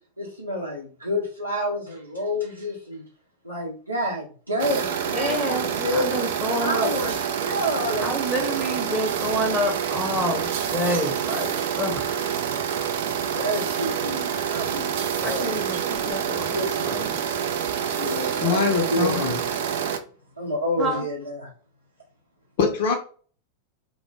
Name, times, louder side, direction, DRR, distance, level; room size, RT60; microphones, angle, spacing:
voice 1, 0.2-3.0 3.4-6.0 6.5-8.1 8.5-8.6 13.3-14.9 15.2-15.6 16.2-16.8 17.9-18.6 18.9-19.4 20.4-21.5, equal, 85° right, -6 dB, 0.7 m, -29 dB
sound 1, 4.6-20.0, right 8 dB, 55° right, 0.3 m, -27 dB
voice 2, 5.1-6.9 8.0-12.1 15.2-17.2 20.8-21.0, equal, ahead, 0 dB, 0.7 m, -28 dB
voice 3, 18.4-19.4 22.6-23.0, left 5 dB, 50° left, 3 dB, 0.5 m, -23 dB
2.2 x 2.0 x 3.2 m, 0.41 s
figure-of-eight pair, 90°, 0 cm